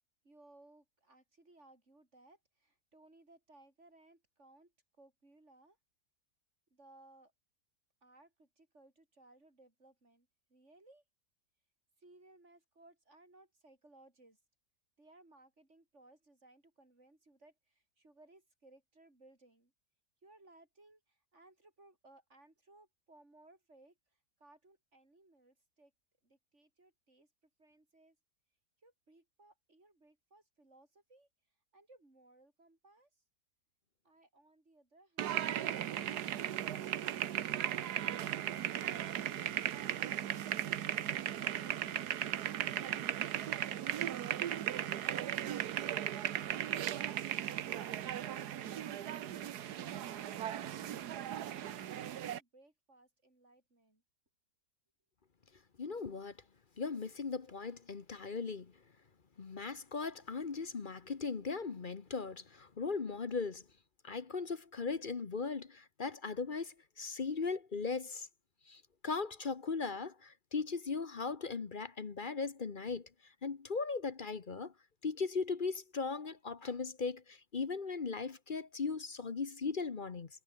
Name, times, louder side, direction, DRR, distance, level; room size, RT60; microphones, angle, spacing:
voice 1, 0.2-5.8 6.7-7.3 8.0-11.0 12.0-14.4 15.0-19.7 20.2-24.0 24.4-25.9 26.2-27.3 27.6-28.2 28.8-31.3 31.7-33.1 34.0-35.5 51.7-54.0, right 2 dB, 45° right, 6.3 m, -64 dB
sound 1, 35.2-52.4, right 11 dB, 80° right, 1.5 m, -37 dB
voice 2, 55.8-56.3 56.8-58.7 59.4-63.6 64.0-68.3 68.7-73.1 73.4-74.7 75.0-80.3, left 4 dB, 35° left, 1.1 m, -38 dB
omnidirectional pair, 1.7 m